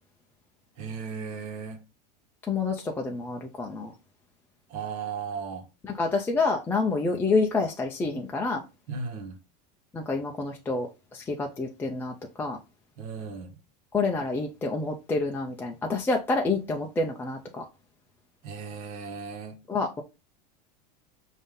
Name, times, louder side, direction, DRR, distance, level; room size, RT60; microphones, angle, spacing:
voice 1, 0.8-1.8 4.7-5.7 8.9-9.4 13.0-13.6 18.4-19.5, right 5 dB, 65° right, 1.3 m, -36 dB
voice 2, 2.5-3.9 5.8-8.6 9.9-10.9 11.1-12.6 13.9-17.6 19.7-20.0, left 3 dB, 10° left, 0.4 m, -28 dB
5.3 x 2.7 x 3.6 m
supercardioid pair, 145°, 21 cm